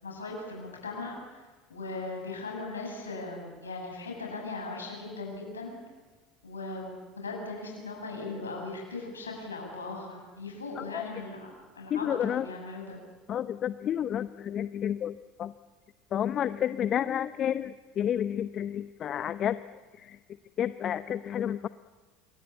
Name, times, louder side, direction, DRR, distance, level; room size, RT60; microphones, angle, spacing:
voice 1, 0.0-5.8 6.4-11.5 11.8-13.0, left 3 dB, 85° left, 0 dB, 7.7 m, -38 dB
voice 2, 10.8-11.1 11.9-12.5 13.3-15.5 16.1-19.6 19.9-20.2 20.6-21.7, left 10 dB, 45° left, 13 dB, 0.8 m, -30 dB
27.5 x 24.0 x 8.4 m, 1.3 s
figure-of-eight pair, 70°, 0 cm